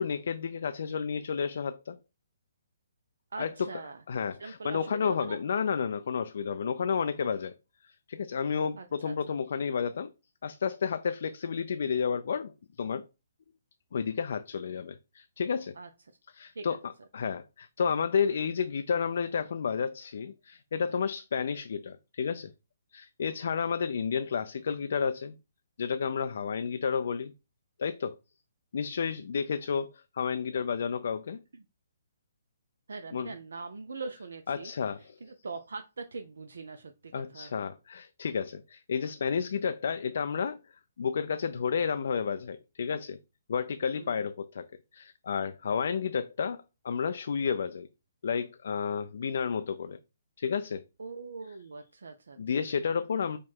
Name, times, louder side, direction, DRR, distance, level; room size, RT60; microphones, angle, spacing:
voice 1, 0.0-2.0 3.4-3.5 4.1-7.5 7.8-10.1 10.4-12.5 12.8-13.0 13.9-15.7 16.3-22.5 22.9-25.4 25.8-27.3 27.8-28.2 28.7-31.4 33.1-33.3 34.5-35.2 37.1-40.6 41.0-43.2 43.5-44.7 44.9-47.9 48.2-50.0 50.4-50.8 52.4-53.4, left 6 dB, 65° left, 0.3 m, -31 dB
voice 2, 3.3-4.0 4.4-5.6 8.8-9.2 15.8-15.9 16.5-16.7 32.9-34.7 35.2-37.5 43.9-44.2 51.0-52.6, right 4 dB, 75° right, 0.4 m, -42 dB
4.5 x 2.3 x 4.3 m
hypercardioid pair, 140°, 0 cm